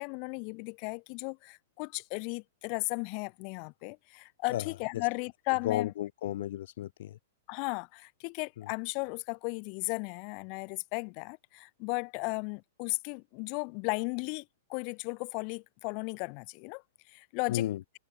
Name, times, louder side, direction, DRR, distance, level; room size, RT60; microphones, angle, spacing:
voice 1, 0.0-5.9 7.5-14.4 14.7-16.8 17.1-17.7, left 39 dB, 45° left, 0.8 m, -35 dB
voice 2, 5.6-7.2 8.6-8.7 17.5-17.8, left 13 dB, 65° left, 0.3 m, -33 dB
hypercardioid pair, 130°, 0 cm